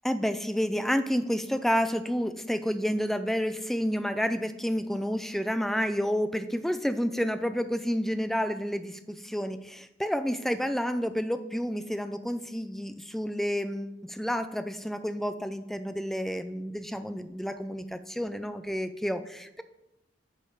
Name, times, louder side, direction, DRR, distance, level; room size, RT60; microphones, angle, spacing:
voice 1, 0.0-19.6, equal, ahead, 10 dB, 0.4 m, -30 dB
9.9 x 5.3 x 4.8 m, 0.88 s
head